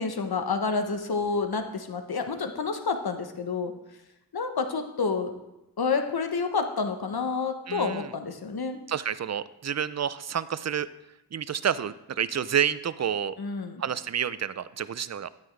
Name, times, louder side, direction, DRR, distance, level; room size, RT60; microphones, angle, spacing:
voice 1, 0.0-3.7 4.3-5.3 5.8-8.8 13.4-13.8, left 4 dB, 60° left, 6 dB, 1.1 m, -29 dB
voice 2, 7.7-8.1 8.9-10.9 11.3-13.4 13.8-15.3, right 8 dB, 40° right, 16 dB, 0.5 m, -29 dB
9.2 x 9.0 x 3.3 m, 0.95 s
cardioid pair, 40°, 42 cm